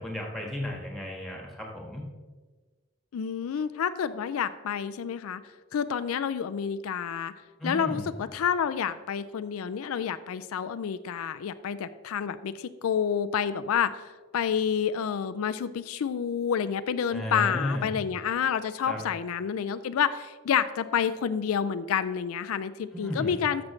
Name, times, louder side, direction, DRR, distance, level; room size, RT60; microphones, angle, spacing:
voice 1, 0.0-2.0 7.6-8.1 17.1-17.9 18.9-19.0 22.9-23.4, left 1 dB, ahead, 0 dB, 1.6 m, -34 dB
voice 2, 3.1-5.4 5.7-7.3 7.6-14.1 14.3-23.7, left 7 dB, 75° left, 12 dB, 0.4 m, -29 dB
13.5 x 6.2 x 3.2 m, 1.3 s
head